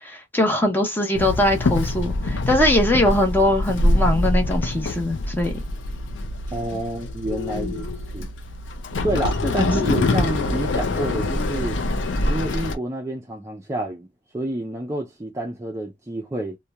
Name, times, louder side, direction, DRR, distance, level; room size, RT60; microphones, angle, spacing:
voice 1, 0.0-5.5 7.5-7.7 9.4-9.9, left 1 dB, 10° left, 0.7 m, -21 dB
Walk footsteps / Chatter / Hiss, 1.2-12.8, left 2 dB, 80° left, 0.5 m, -24 dB
voice 2, 6.5-7.9 8.1-8.3 9.0-11.8 12.3-14.1 14.3-16.6, right 1 dB, 15° right, 0.4 m, -28 dB
2.8 x 2.1 x 2.2 m
head